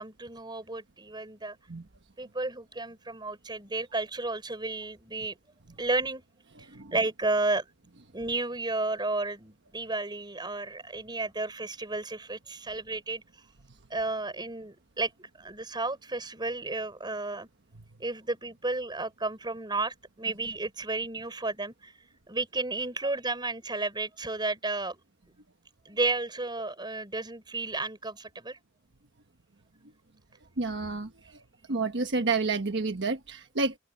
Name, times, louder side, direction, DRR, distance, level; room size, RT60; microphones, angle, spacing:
voice 1, 0.0-1.6 2.2-5.4 5.8-6.2 6.6-7.7 8.1-13.2 13.9-17.5 18.0-21.9 22.3-25.0 25.9-28.6, right 2 dB, 20° right, 5.4 m, -32 dB
voice 2, 30.6-31.4 31.7-33.8, right 3 dB, 60° right, 1.3 m, -30 dB
open air
head